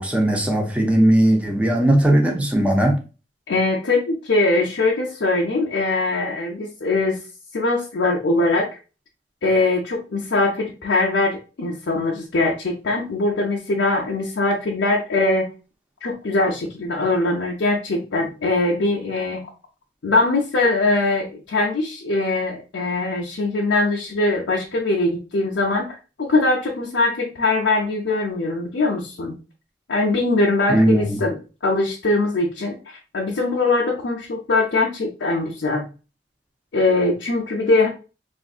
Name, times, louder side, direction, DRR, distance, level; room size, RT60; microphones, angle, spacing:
voice 1, 0.0-3.0 30.7-31.2, right 1 dB, 5° right, 2 dB, 0.6 m, -18 dB
voice 2, 3.5-7.2 7.5-8.8 9.4-15.5 16.0-19.4 20.0-29.4 29.9-31.4 31.6-35.9 36.7-37.9, left 2 dB, 75° left, -2 dB, 0.6 m, -21 dB
3.4 x 2.5 x 2.4 m, 0.33 s
head